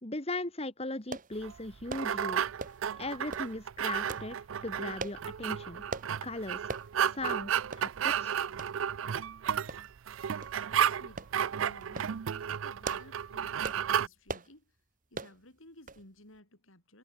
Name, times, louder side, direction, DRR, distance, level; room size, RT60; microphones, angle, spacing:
voice 1, 0.0-2.4 3.0-5.8 6.2-6.7 7.1-8.4, left 2 dB, 30° left, 2.1 m, -38 dB
sound 1, 1.1-1.3 1.9-2.1 2.6-2.9 3.3-3.5 4.1-4.3 5.0-5.2 5.9-6.1 6.7-6.9 7.3-7.4 7.7-7.9 8.6-8.7 9.7-10.1 10.4-10.6 11.2-11.3 11.8-12.1 12.6-13.2 13.6-13.9 14.3-14.5 15.1-15.4 15.9-16.1 16.3-16.4, right 3 dB, 40° right, 1.9 m, -39 dB
sound 2, 1.4-14.1, right 8 dB, 75° right, 0.4 m, -33 dB
voice 2, 10.7-14.8 15.1-17.0, left 1 dB, 80° left, 6.6 m, -56 dB
head